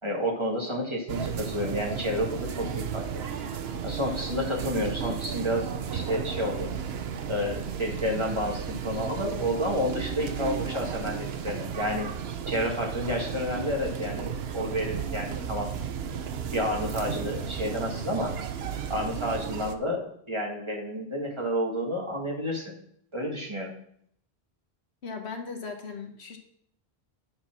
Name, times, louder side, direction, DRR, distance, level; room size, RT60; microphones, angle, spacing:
voice 1, 0.0-3.0 3.8-6.7 7.3-12.1 12.5-15.7 16.5-18.3 18.9-22.7 23.1-23.7, equal, 25° right, -2 dB, 1.8 m, -30 dB
sound 1, 1.1-19.8, right 7 dB, 70° right, 0.9 m, -34 dB
voice 2, 25.0-26.4, left 5 dB, 80° left, 3 dB, 1.4 m, -37 dB
10.5 x 4.2 x 6.0 m, 0.67 s
omnidirectional pair, 1.1 m